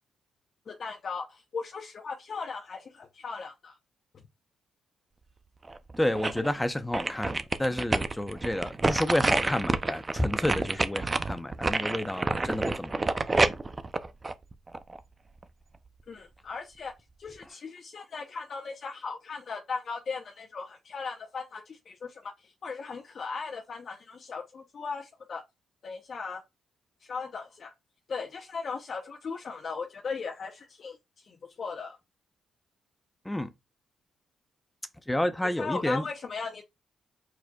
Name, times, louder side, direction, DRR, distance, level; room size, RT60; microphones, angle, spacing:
voice 1, 0.7-3.8 16.1-16.9 17.2-25.4 25.8-26.4 27.0-27.7 28.1-32.0 35.4-36.6, left 5 dB, 55° left, 0.8 m, -38 dB
sound 1, 5.7-6.5 6.9-15.0 15.4-15.5, right 3 dB, 30° right, 0.6 m, -28 dB
voice 2, 6.0-13.1 33.2-33.5 35.1-36.0, left 1 dB, 10° left, 0.7 m, -30 dB
4.7 x 4.3 x 2.3 m
supercardioid pair, 65°, 0 cm